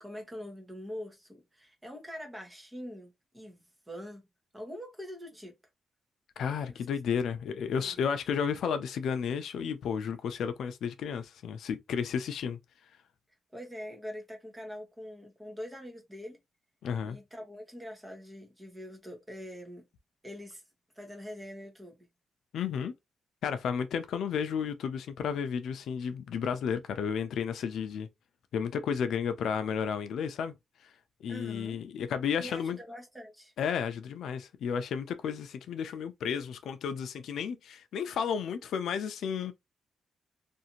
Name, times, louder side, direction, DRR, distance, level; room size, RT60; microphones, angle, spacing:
voice 1, 0.0-4.2 4.5-5.6 6.7-6.8 7.2-7.4 7.7-7.9 13.5-16.4 17.0-19.8 20.2-20.6 20.9-22.0 31.3-31.8 32.4-33.5, equal, 10° right, 0.9 m, -44 dB
voice 2, 6.4-12.6 16.8-17.2 22.5-22.9 23.4-28.1 28.5-30.5 31.2-32.8 33.6-39.5, left 7 dB, 80° left, 0.4 m, -32 dB
2.6 x 2.5 x 2.8 m
wide cardioid pair, 155°, 0 cm